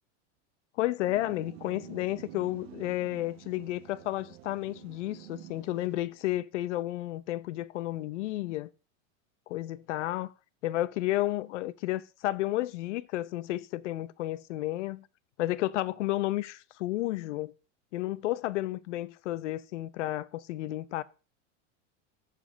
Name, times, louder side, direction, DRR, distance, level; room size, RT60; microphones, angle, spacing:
voice 1, 0.8-8.7 9.5-10.3 10.6-15.1 15.4-17.5 17.9-21.0, left 16 dB, 75° left, 0.8 m, -32 dB
sound 1, 1.0-6.3, right 14 dB, 60° right, 1.0 m, -49 dB
7.5 x 7.0 x 6.2 m
supercardioid pair, 180°, 36 cm